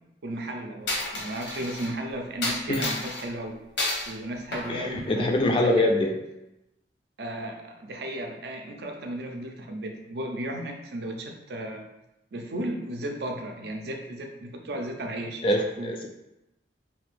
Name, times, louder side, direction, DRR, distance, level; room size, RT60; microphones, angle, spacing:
voice 1, 0.2-3.6 4.1-5.9 7.2-11.9 12.3-16.0, right 1 dB, 65° right, 3 dB, 0.4 m, -35 dB
Coin (dropping), 0.9-1.9 2.4-3.2 3.8-4.1 4.5-5.6, left 2 dB, 80° left, 0.8 m, -31 dB
voice 2, 4.7-6.1 15.4-16.1, left 1 dB, 30° left, 3 dB, 0.3 m, -24 dB
2.7 x 2.4 x 3.3 m, 0.91 s
head